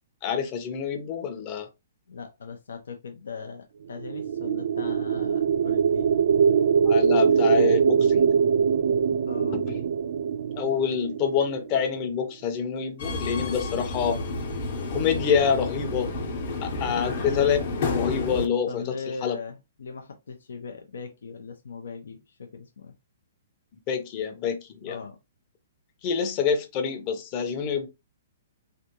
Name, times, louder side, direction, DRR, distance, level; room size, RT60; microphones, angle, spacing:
voice 1, 0.2-1.7 6.8-8.3 9.5-9.8 10.6-14.2 14.9-16.1 16.6-17.6 17.9-18.8 19.2-19.4 23.9-25.0 26.0-27.9, left 7 dB, 35° left, 0.8 m, -26 dB
voice 2, 2.1-6.1 9.3-9.6 18.7-22.9 24.9-25.2, left 5 dB, 80° left, 0.7 m, -39 dB
sound 1, 4.0-12.1, right 6 dB, 65° right, 0.3 m, -23 dB
Subway metro underground, 13.0-18.5, left 3 dB, 50° left, 1.1 m, -30 dB
3.4 x 2.6 x 2.9 m
hypercardioid pair, 145°, 0 cm